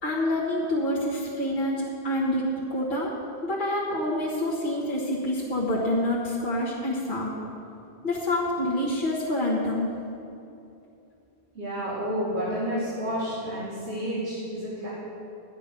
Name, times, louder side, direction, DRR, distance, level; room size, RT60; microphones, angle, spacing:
voice 1, 0.0-3.1 3.4-7.4 8.0-9.9, left 1 dB, 50° left, -6 dB, 1.7 m, -27 dB
voice 2, 11.5-14.9, equal, 90° right, -11 dB, 3.1 m, -30 dB
12.0 x 9.4 x 5.4 m, 2.7 s
omnidirectional pair, 1.1 m